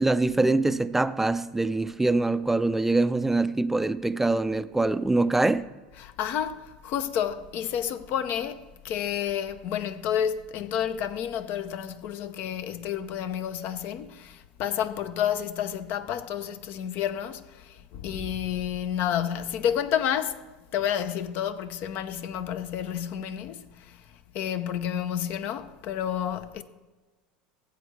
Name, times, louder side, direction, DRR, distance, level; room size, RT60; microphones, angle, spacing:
voice 1, 0.0-5.7, right 2 dB, 5° right, 0.4 m, -24 dB
voice 2, 6.0-20.4 20.7-24.0 24.3-26.6, left 9 dB, 55° left, 0.7 m, -30 dB
15.0 x 8.0 x 3.3 m
hypercardioid pair, 85°, 4 cm